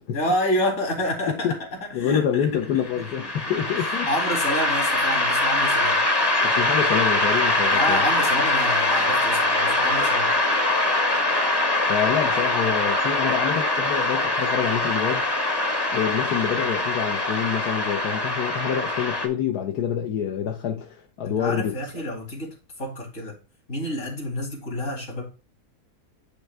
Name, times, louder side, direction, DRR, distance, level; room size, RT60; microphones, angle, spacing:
voice 1, 0.1-1.7 2.0-2.5 3.0-3.1 4.1-6.0 7.7-10.4 21.2-23.3 23.7-25.2, left 1 dB, 55° left, 2.7 m, -28 dB
voice 2, 1.9-4.1 6.4-8.0 11.9-15.3 15.9-21.8, left 8 dB, 80° left, 1.4 m, -27 dB
sound 1, 2.9-19.3, left 2 dB, 20° left, 0.8 m, -23 dB
10.0 x 3.4 x 3.4 m
omnidirectional pair, 1.7 m